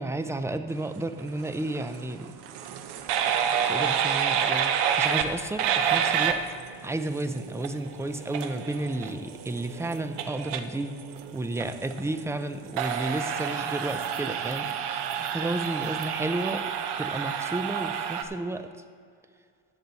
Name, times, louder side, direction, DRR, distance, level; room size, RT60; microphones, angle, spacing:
voice 1, 0.0-2.3 3.7-4.7 5.0-6.4 6.8-10.9 11.3-16.6 17.0-18.7, right 2 dB, 5° right, 9 dB, 0.4 m, -32 dB
sound 1, 1.3-18.2, right 8 dB, 70° right, 0.9 m, -29 dB
14.0 x 7.9 x 4.1 m, 2.2 s
cardioid pair, 130°, 41 cm